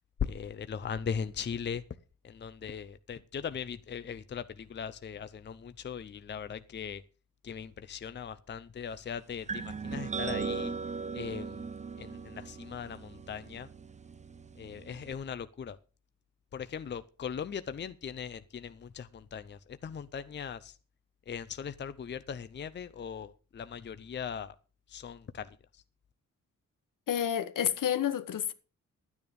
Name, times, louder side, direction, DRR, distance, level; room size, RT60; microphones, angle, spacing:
voice 1, 0.2-1.8 2.2-7.0 7.4-10.7 11.1-11.7 12.0-13.7 14.6-15.8 16.5-20.8 21.3-24.6 24.9-25.8, left 7 dB, 35° left, 0.6 m, -39 dB
sound 1, 9.5-15.1, right 5 dB, 20° right, 0.6 m, -38 dB
voice 2, 27.1-28.5, left 9 dB, 75° left, 1.2 m, -29 dB
12.5 x 9.6 x 5.2 m
wide cardioid pair, 155°, 32 cm